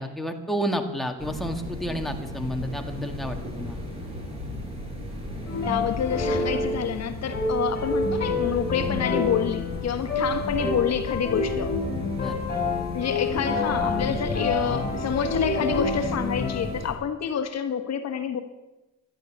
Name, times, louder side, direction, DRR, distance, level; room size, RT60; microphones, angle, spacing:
voice 1, 0.0-3.8 12.2-12.4, equal, ahead, 3 dB, 1.9 m, -30 dB
sound 1, 1.2-16.9, left 1 dB, 20° right, 6.4 m, -36 dB
sound 2, 5.5-16.7, left 3 dB, 35° left, 4.7 m, -28 dB
voice 2, 5.6-11.7 12.9-18.4, left 8 dB, 60° left, 8 dB, 1.3 m, -28 dB
13.0 x 11.5 x 8.4 m, 1.1 s
cardioid pair, 90°, 30 cm